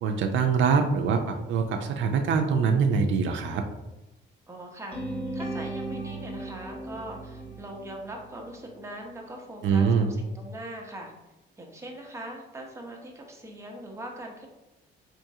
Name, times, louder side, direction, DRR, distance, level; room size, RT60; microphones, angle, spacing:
voice 1, 0.0-3.6 9.6-10.1, right 5 dB, 70° right, 4 dB, 0.4 m, -24 dB
voice 2, 4.5-11.1 11.6-14.5, right 1 dB, 15° right, 1 dB, 0.7 m, -41 dB
sound 1, 4.9-9.0, right 2 dB, 10° left, 1.2 m, -37 dB
3.5 x 3.0 x 2.7 m, 0.99 s
cardioid pair, 90°, 20 cm